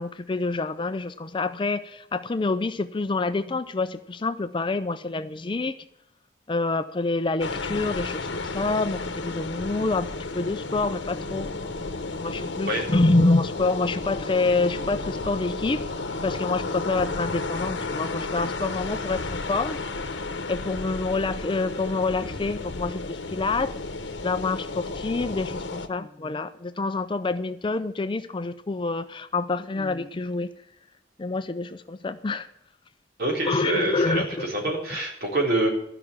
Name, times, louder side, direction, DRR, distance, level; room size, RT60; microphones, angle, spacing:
voice 1, 0.0-5.8 6.5-10.1 10.3-11.5 12.2-15.8 16.2-19.8 20.5-23.8 24.2-30.5 31.2-32.5 33.4-34.5, left 3 dB, 25° left, 11 dB, 0.5 m, -27 dB
sound 1, 7.4-25.9, left 3 dB, 80° left, 1.0 m, -32 dB
voice 2, 33.2-35.7, right 2 dB, 55° right, -1 dB, 3.8 m, -26 dB
13.0 x 5.9 x 8.7 m, 0.81 s
head